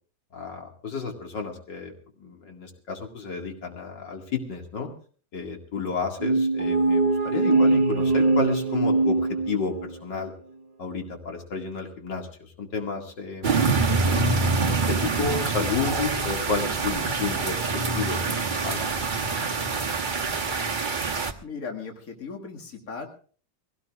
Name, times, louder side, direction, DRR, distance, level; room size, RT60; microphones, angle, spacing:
voice 1, 0.3-1.9 2.2-4.9 5.3-10.3 10.8-13.5 14.0-19.0, left 5 dB, 85° left, 2 dB, 2.9 m, -31 dB
sound 1, 6.2-10.0, right 3 dB, 50° right, 0.4 m, -22 dB
sound 2, 13.4-21.3, right 4 dB, 35° right, 1.0 m, -25 dB
voice 2, 21.4-23.1, left 5 dB, 55° left, 1 dB, 2.5 m, -37 dB
22.5 x 17.0 x 2.5 m, 0.42 s
omnidirectional pair, 1.9 m